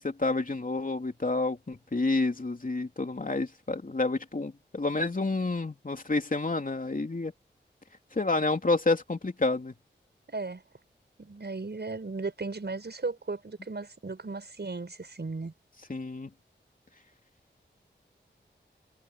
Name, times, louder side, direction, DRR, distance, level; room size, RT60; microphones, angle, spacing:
voice 1, 0.0-7.3 8.1-9.7 15.9-16.3, left 3 dB, 45° left, 3.2 m, -29 dB
voice 2, 10.3-10.6 11.2-15.5, right 3 dB, 60° right, 7.1 m, -36 dB
cardioid pair, 50°, 19 cm